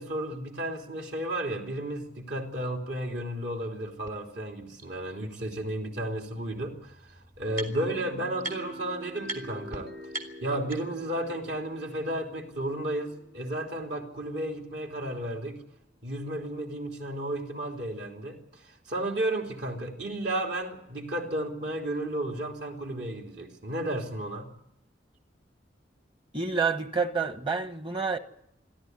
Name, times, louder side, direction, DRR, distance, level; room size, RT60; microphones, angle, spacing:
voice 1, 0.0-6.9 7.4-9.9 10.4-15.6 16.0-18.4 18.9-24.5, right 1 dB, 65° right, 3.4 m, -33 dB
sound 1, 4.1-4.2 4.8-4.9 6.2-6.3 6.5-8.0 8.4-8.9 9.2-9.4 9.7-9.8 10.1-11.1, right 1 dB, 50° right, 3.2 m, -39 dB
sound 2, 7.7-15.4, equal, 85° right, 5.2 m, -47 dB
voice 2, 26.3-28.2, right 5 dB, 30° right, 1.3 m, -28 dB
27.5 x 11.5 x 9.6 m
head